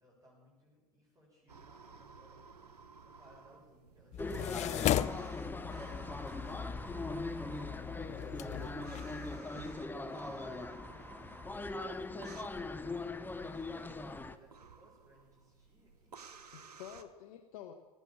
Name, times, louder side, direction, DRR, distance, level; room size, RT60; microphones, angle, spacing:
voice 1, 0.0-2.4 3.0-4.8 5.6-6.6 7.4-8.2 10.8-11.4 12.1-16.2, equal, 15° right, -4 dB, 7.4 m, -63 dB
sound 1, 1.5-17.0, right 5 dB, 85° right, 1.2 m, -55 dB
sound 2, 4.1-9.4, left 12 dB, 35° left, 0.6 m, -37 dB
sound 3, 4.2-14.4, left 2 dB, 10° left, 0.9 m, -41 dB
voice 2, 7.9-8.9 16.5-17.7, left 10 dB, 65° left, 5 dB, 1.3 m, -49 dB
19.5 x 9.0 x 7.7 m, 1.2 s
hypercardioid pair, 80°, 20 cm